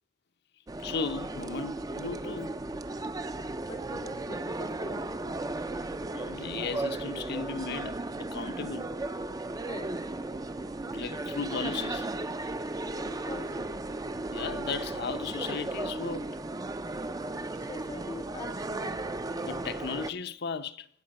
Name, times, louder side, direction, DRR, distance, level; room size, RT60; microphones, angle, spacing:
sound 1, 0.7-20.1, right 2 dB, 20° right, 0.5 m, -35 dB
voice 1, 0.8-2.6 6.1-8.0 8.3-8.9 10.9-12.1 14.3-16.4 19.4-20.9, left 5 dB, 60° left, 0.7 m, -36 dB
voice 2, 3.7-5.4 9.6-9.9 12.8-13.7 17.5-19.0, left 3 dB, 25° left, 0.6 m, -44 dB
17.0 x 8.2 x 5.3 m
head